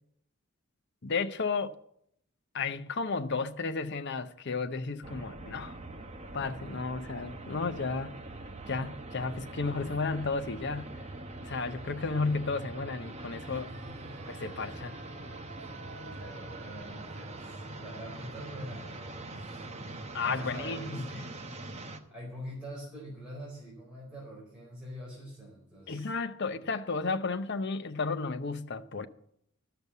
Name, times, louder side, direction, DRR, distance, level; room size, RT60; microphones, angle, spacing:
voice 1, 1.0-1.8 2.5-5.8 6.3-8.1 8.7-10.9 11.4-13.7 14.3-15.0 20.1-21.0 25.9-29.1, left 4 dB, 50° left, 0.7 m, -33 dB
sound 1, 5.0-22.0, right 2 dB, 30° right, 0.9 m, -43 dB
voice 2, 13.4-14.5 15.5-19.6 20.2-21.3 22.1-26.1 26.4-26.6, equal, 5° right, 4.4 m, -45 dB
sound 2, 13.7-23.6 23.9-24.0, right 3 dB, 45° right, 1.3 m, -54 dB
12.5 x 6.9 x 8.2 m
head